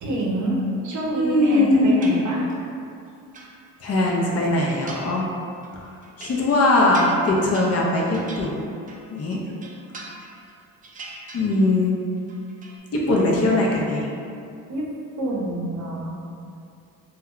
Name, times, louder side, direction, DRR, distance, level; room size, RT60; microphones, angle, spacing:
voice 1, 0.0-2.5 14.7-14.9 15.2-16.2, right 1 dB, 55° right, -3 dB, 0.7 m, -27 dB
voice 2, 1.1-2.0 3.8-5.3 5.7-8.6 9.1-9.4 11.3-11.9 12.9-14.1, left 2 dB, 45° left, -2 dB, 0.5 m, -21 dB
sound 1, 2.0-2.7 3.1-4.2 4.7-5.3 5.6-9.1 9.5-10.5 10.8-11.9 12.2-12.8, right 2 dB, 25° right, 0.3 m, -41 dB
2.2 x 2.1 x 3.6 m, 2.4 s
cardioid pair, 95°, 36 cm